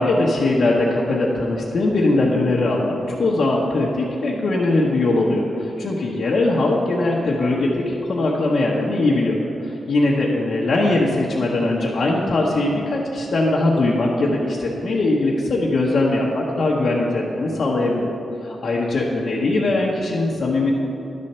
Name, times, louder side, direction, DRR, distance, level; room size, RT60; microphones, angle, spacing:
voice 1, 0.0-9.4 9.6-18.1 18.4-20.7, left 2 dB, 60° left, -5 dB, 1.0 m, -20 dB
11.0 x 4.3 x 6.7 m, 2.8 s
cardioid pair, 85°, 0 cm